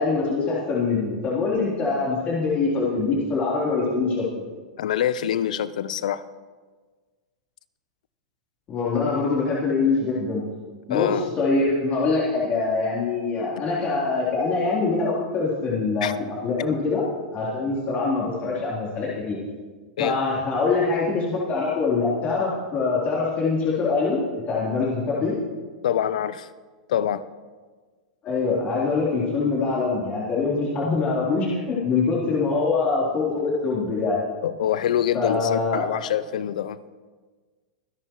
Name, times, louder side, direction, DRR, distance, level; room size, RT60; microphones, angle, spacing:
voice 1, 0.0-4.3 8.7-10.4 10.9-16.1 16.4-17.0 17.3-19.4 20.0-24.2 24.5-25.4 28.2-34.2 35.1-35.9, left 4 dB, 35° left, -6 dB, 3.6 m, -24 dB
voice 2, 4.8-6.2 10.9-11.3 16.0-16.1 20.0-20.2 25.8-26.5 26.9-27.2 34.4-36.8, left 10 dB, 70° left, 17 dB, 0.6 m, -25 dB
26.5 x 11.0 x 3.1 m, 1.4 s
hypercardioid pair, 105°, 4 cm